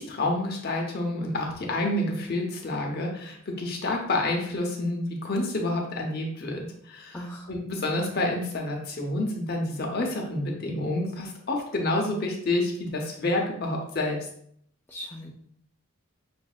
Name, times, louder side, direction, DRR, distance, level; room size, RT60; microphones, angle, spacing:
voice 1, 0.0-7.2 7.5-14.2, left 2 dB, 45° left, 0 dB, 0.8 m, -28 dB
voice 2, 7.1-7.5 14.9-15.3, equal, 10° left, -3 dB, 0.3 m, -38 dB
6.1 x 2.6 x 2.4 m, 0.67 s
head